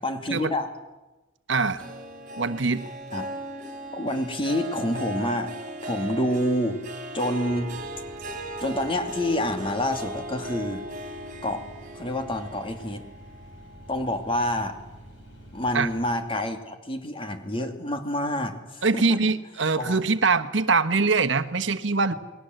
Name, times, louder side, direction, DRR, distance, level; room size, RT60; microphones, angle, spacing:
voice 1, 0.0-0.7 3.1-3.3 3.9-6.8 7.1-7.7 8.6-10.8 11.4-11.6 11.9-13.1 13.9-14.8 15.5-19.2 19.8-20.0, left 1 dB, 25° left, 6 dB, 2.6 m, -28 dB
voice 2, 1.5-1.8 2.4-2.9 15.7-15.9 18.8-22.1, right 4 dB, 65° right, 9 dB, 1.2 m, -23 dB
Harp, 1.8-14.5 14.9-15.3 15.8-15.9, right 1 dB, 40° right, 3.9 m, -37 dB
sound 1, 7.5-16.2, equal, 75° left, 6.0 m, -48 dB
29.5 x 20.5 x 7.9 m, 1.1 s
head